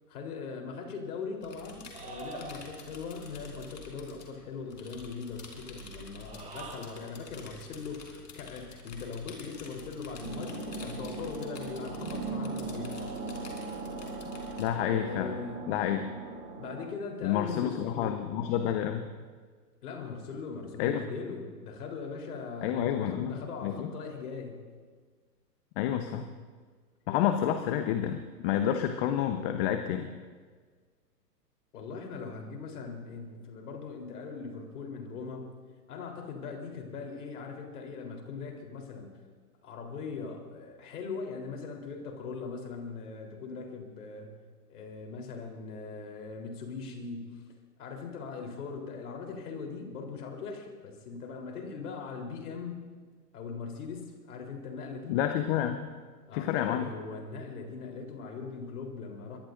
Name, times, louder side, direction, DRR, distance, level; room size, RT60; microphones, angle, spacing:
voice 1, 0.1-13.1 14.8-15.7 16.6-18.3 19.8-24.7 31.7-35.6 35.9-39.1 39.6-44.4 44.7-47.4 47.8-52.9 53.3-55.2 56.3-59.4, left 5 dB, 65° left, 2 dB, 4.0 m, -40 dB
sound 1, 1.4-14.7, left 3 dB, 85° left, 4.5 m, -49 dB
sound 2, 1.9-3.0 6.1-7.2, right 4 dB, 15° right, 1.9 m, -45 dB
sound 3, 10.2-16.9, right 3 dB, 45° right, 3.7 m, -39 dB
voice 2, 14.6-15.3 15.7-16.0 17.2-19.1 20.8-21.0 22.6-23.3 23.6-23.9 25.8-26.3 27.1-30.1 55.1-55.9 56.3-56.9, left 10 dB, 35° left, 7 dB, 1.0 m, -29 dB
23.0 x 22.0 x 2.7 m, 1.5 s
hypercardioid pair, 125°, 49 cm